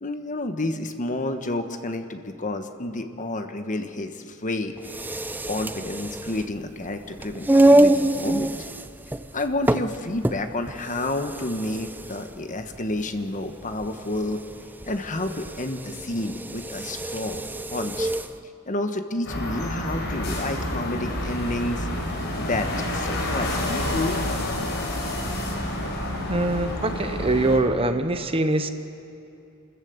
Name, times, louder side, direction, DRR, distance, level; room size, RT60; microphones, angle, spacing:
voice 1, 0.0-4.7 5.5-8.5 9.3-14.4 14.9-18.1 18.7-21.9 22.4-24.2, left 2 dB, 35° left, 7 dB, 1.2 m, -30 dB
sound 1, 4.8-18.4, right 1 dB, 10° right, 0.5 m, -25 dB
sound 2, 19.2-27.6, left 1 dB, 55° left, 4.8 m, -28 dB
voice 2, 26.3-28.7, right 2 dB, 25° right, 9 dB, 0.9 m, -23 dB
29.5 x 14.0 x 8.0 m, 2.7 s
head